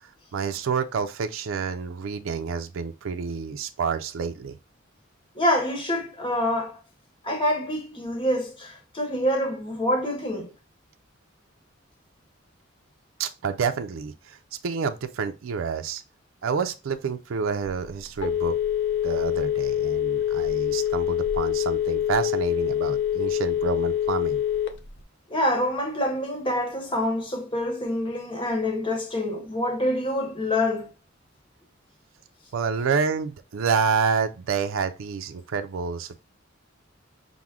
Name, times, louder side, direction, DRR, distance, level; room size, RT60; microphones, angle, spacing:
voice 1, 0.3-4.6 13.2-14.4 14.6-16.0 16.4-18.5 19.0-24.4 32.5-36.2, right 6 dB, 80° right, 0.4 m, -28 dB
voice 2, 5.3-6.8 7.2-10.5 25.3-30.9, left 1 dB, 25° left, 1.0 m, -26 dB
Telephone, 17.6-25.0, left 10 dB, 60° left, 0.6 m, -25 dB
5.9 x 2.0 x 3.5 m
head